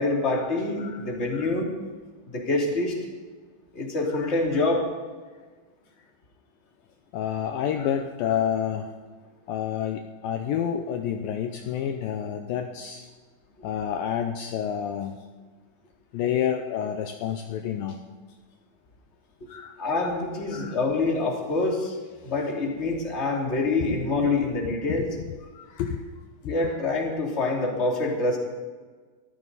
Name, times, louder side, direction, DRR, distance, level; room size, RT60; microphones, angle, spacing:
voice 1, 0.0-1.7 2.3-2.9 3.7-4.8 19.8-21.9 22.2-25.1 26.4-28.4, left 3 dB, 20° left, -1 dB, 2.6 m, -26 dB
voice 2, 7.1-8.9 9.5-13.1 13.6-15.2 16.1-18.0 19.5-20.1 20.5-20.8 22.2-22.3 25.5-26.1 26.6-26.7, left 9 dB, 75° left, 5 dB, 2.3 m, -29 dB
23.5 x 14.5 x 4.1 m, 1.4 s
omnidirectional pair, 4.5 m